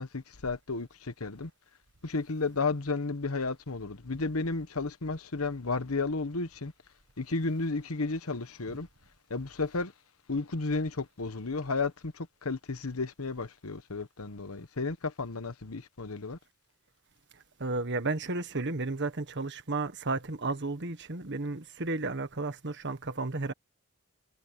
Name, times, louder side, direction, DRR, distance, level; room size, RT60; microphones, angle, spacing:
voice 1, 0.0-1.5 2.0-6.7 7.2-8.9 9.3-9.9 10.3-16.4, left 3 dB, 85° left, 1.2 m, -33 dB
voice 2, 17.6-23.5, right 3 dB, 55° right, 1.6 m, -33 dB
head